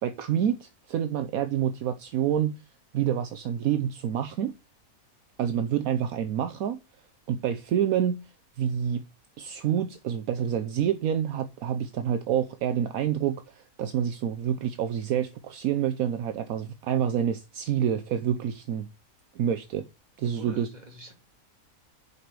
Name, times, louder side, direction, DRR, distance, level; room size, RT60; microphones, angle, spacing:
voice 1, 0.0-2.6 2.9-4.5 5.4-6.8 7.3-8.2 8.6-9.0 9.4-18.9 19.3-19.9 20.2-20.7, right 9 dB, 75° right, 1.1 m, -27 dB
voice 2, 20.2-21.1, equal, 30° right, 2.4 m, -46 dB
7.0 x 4.8 x 6.6 m
omnidirectional pair, 1.6 m